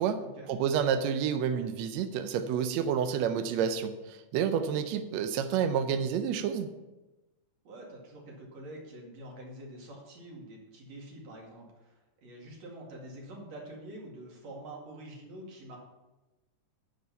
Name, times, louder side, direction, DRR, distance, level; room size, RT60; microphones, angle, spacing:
voice 1, 0.5-6.7, right 7 dB, 80° right, 8 dB, 1.6 m, -29 dB
voice 2, 7.6-15.8, right 1 dB, 55° right, -1 dB, 3.1 m, -46 dB
9.6 x 6.6 x 5.6 m, 1.1 s
omnidirectional pair, 3.7 m